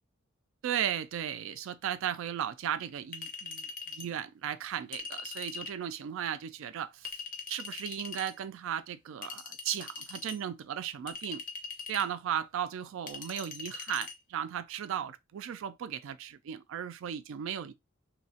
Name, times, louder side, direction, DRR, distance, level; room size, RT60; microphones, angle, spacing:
voice 1, 0.6-7.2 7.5-11.4 11.9-17.7, right 9 dB, 70° right, 0.3 m, -36 dB
Chink clink, 3.1-4.1 4.9-5.8 7.0-8.3 9.2-10.4 11.1-12.1 13.1-14.1, left 5 dB, 45° left, 0.5 m, -42 dB
2.7 x 2.0 x 2.7 m
head